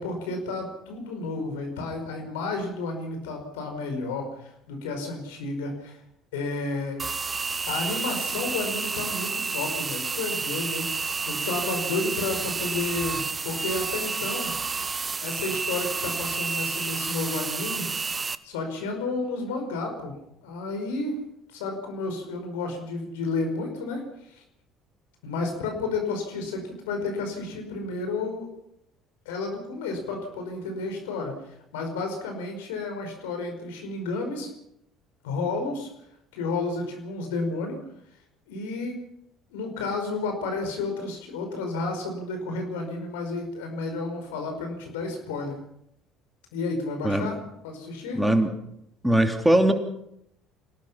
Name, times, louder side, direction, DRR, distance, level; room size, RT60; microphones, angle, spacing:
voice 1, 0.0-6.0 6.3-7.0 7.7-10.9 11.3-14.5 15.2-17.9 18.4-20.1 20.4-21.2 21.5-24.4 25.2-28.5 29.3-34.5 35.2-35.9 36.3-37.8 38.5-39.0 39.5-45.6 46.5-47.4 47.6-48.2, left 3 dB, 75° left, 4 dB, 5.2 m, -31 dB
sound 1, 7.0-18.4, right 4 dB, 30° right, 1.0 m, -30 dB
voice 2, 48.1-48.5 49.0-49.7, right 1 dB, 5° right, 5 dB, 2.9 m, -20 dB
26.5 x 18.0 x 5.8 m, 0.76 s
hypercardioid pair, 60°, 0 cm